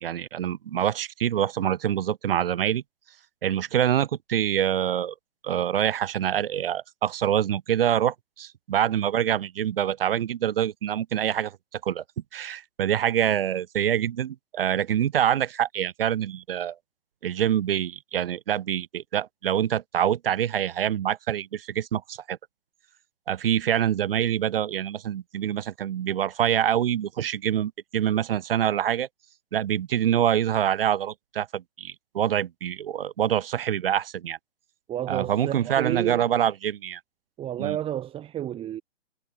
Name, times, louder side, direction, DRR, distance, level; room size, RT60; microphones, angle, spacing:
voice 1, 0.0-2.8 3.4-5.1 5.4-12.0 12.3-16.8 17.2-22.4 23.3-29.1 29.5-34.4 35.1-37.0 37.6-37.8, right 10 dB, 60° right, 2.3 m, -25 dB
voice 2, 34.9-36.3 37.4-38.8, right 11 dB, 15° right, 2.4 m, -31 dB
hypercardioid pair, 140°, 32 cm